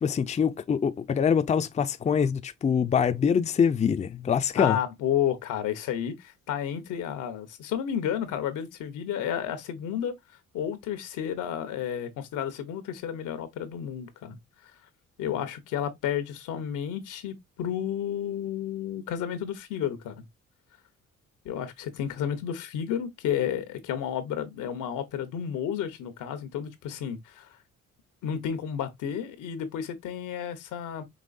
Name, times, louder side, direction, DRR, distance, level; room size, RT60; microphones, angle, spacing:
voice 1, 0.0-4.8, left 7 dB, 25° left, 0.4 m, -24 dB
voice 2, 4.6-10.2 10.5-14.4 15.2-20.2 21.4-27.5 28.2-31.0, left 9 dB, 90° left, 1.1 m, -31 dB
5.3 x 3.0 x 2.5 m
cardioid pair, 90°, 30 cm